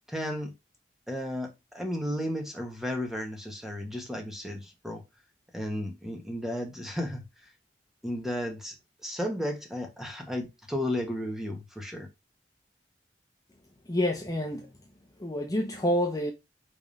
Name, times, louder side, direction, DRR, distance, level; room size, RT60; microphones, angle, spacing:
voice 1, 0.1-0.5 1.1-5.0 5.5-7.2 8.0-8.7 9.0-12.1, left 1 dB, ahead, 1.5 m, -33 dB
voice 2, 13.9-14.7 15.2-16.3, left 1 dB, 20° left, 0.9 m, -28 dB
5.4 x 3.5 x 5.4 m
head